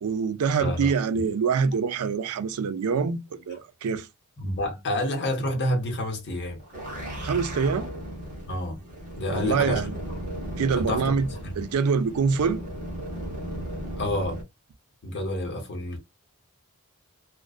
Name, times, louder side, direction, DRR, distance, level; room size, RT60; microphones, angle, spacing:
voice 1, 0.0-4.1 7.2-7.9 9.3-9.9 10.6-11.3 11.6-12.6, right 5 dB, 80° right, 0.4 m, -25 dB
voice 2, 0.6-1.2 4.4-6.6 8.5-8.8 9.2-9.9 10.7-11.6 14.0-14.4 15.0-16.0, left 1 dB, 50° left, 0.8 m, -29 dB
sound 1, 6.6-14.4, equal, 35° right, 1.0 m, -36 dB
2.4 x 2.2 x 2.3 m
head